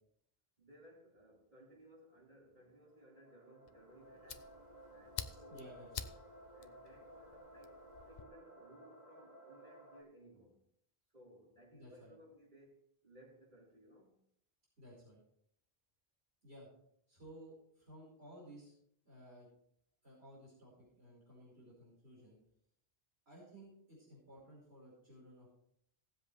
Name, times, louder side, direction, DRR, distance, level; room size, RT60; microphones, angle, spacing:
voice 1, 0.6-4.5 4.9-5.8 6.5-10.6 11.1-14.2, right 1 dB, 45° right, -5 dB, 4.7 m, -61 dB
sound 1, 2.6-10.0, right 1 dB, 30° right, 2.7 m, -57 dB
Fire, 3.7-8.3, left 7 dB, 50° left, 0.7 m, -49 dB
voice 2, 5.5-6.1 11.7-12.1 14.8-15.2 16.4-16.7 17.1-18.7 19.0-19.5 20.0-22.4 23.3-25.5, equal, 90° right, -6 dB, 5.5 m, -56 dB
18.5 x 7.7 x 3.4 m, 0.71 s
omnidirectional pair, 1.0 m